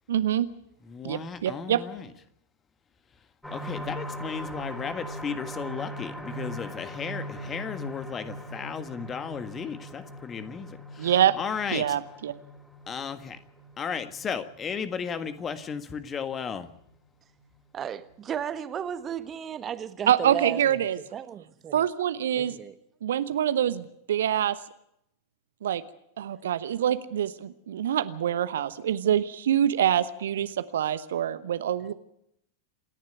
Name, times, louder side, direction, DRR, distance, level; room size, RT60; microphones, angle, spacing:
voice 1, 0.1-0.5 1.0-1.8 11.0-11.3 11.7-12.3 20.1-21.0 21.7-22.5 23.0-24.6 25.6-25.8 26.2-31.9, right 10 dB, 60° right, 1.0 m, -25 dB
voice 2, 0.9-2.0 3.5-12.0 12.9-13.4 13.8-16.7, left 6 dB, 25° left, 1.6 m, -35 dB
sound 1, 3.4-16.9 17.4-17.5 17.9-18.0, equal, 5° left, 4.2 m, -40 dB
voice 3, 17.7-20.8 21.1-21.8 22.4-22.7, right 8 dB, 25° right, 1.4 m, -34 dB
27.5 x 11.0 x 9.4 m
figure-of-eight pair, 90°, 0 cm